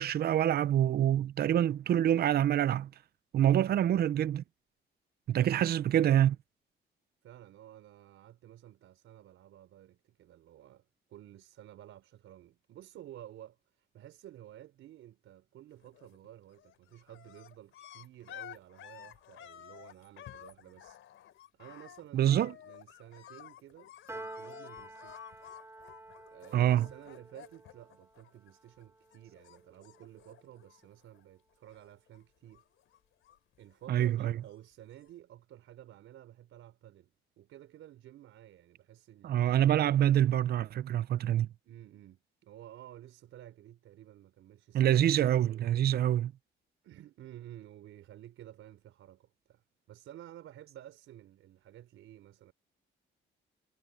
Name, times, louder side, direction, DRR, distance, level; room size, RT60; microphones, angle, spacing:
voice 1, 0.0-2.9 3.3-4.4 5.3-6.4 22.1-22.5 26.5-26.9 33.9-34.3 39.2-41.5 44.7-46.3, right 11 dB, 50° right, 0.6 m, -26 dB
voice 2, 3.6-4.1 5.5-5.8 7.2-21.0 21.5-25.2 26.2-32.6 33.6-40.0 41.6-45.1 45.5-45.7 46.8-52.5, right 12 dB, 90° right, 4.5 m, -53 dB
sound 1, 15.8-16.3 16.5-28.8 29.1-31.2 31.5-32.2 32.5-34.3 35.0-35.1, left 11 dB, 80° left, 3.4 m, -52 dB
Piano, 24.1-30.6, right 2 dB, 10° right, 6.8 m, -50 dB
cardioid pair, 160°, 20 cm